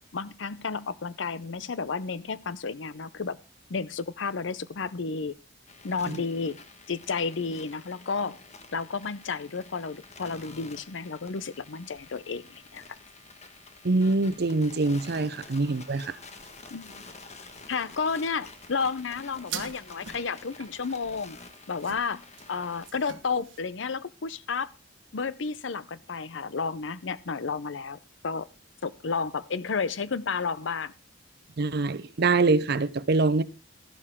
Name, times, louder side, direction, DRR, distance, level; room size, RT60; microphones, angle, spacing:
voice 1, 0.1-3.4 3.7-5.3 5.8-6.6 6.9-8.4 8.7-12.8 16.7-17.0 17.7-21.4 21.7-22.2 22.5-24.7 25.1-28.5 28.8-30.9, left 5 dB, 70° left, 0.7 m, -32 dB
sound 1, 5.7-22.9, left 4 dB, 35° left, 1.4 m, -49 dB
sound 2, 11.8-23.6, right 8 dB, 80° right, 1.2 m, -48 dB
voice 2, 13.8-16.2 31.6-33.4, right 3 dB, 55° right, 0.7 m, -24 dB
13.5 x 11.0 x 3.6 m
head